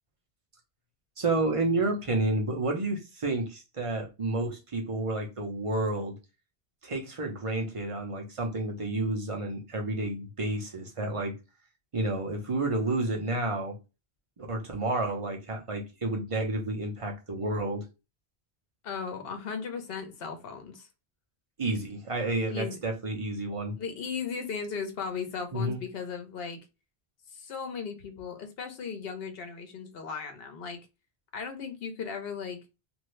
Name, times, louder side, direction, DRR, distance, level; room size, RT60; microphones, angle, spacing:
voice 1, 1.2-6.1 6.8-11.3 11.9-13.8 14.4-17.8 21.6-23.7 25.5-25.8, right 2 dB, 35° right, 0.8 m, -30 dB
voice 2, 18.8-20.9 22.5-22.8 23.8-26.6 27.3-30.8 31.3-32.6, left 6 dB, 65° left, 1.0 m, -36 dB
2.6 x 2.6 x 3.1 m
omnidirectional pair, 1.1 m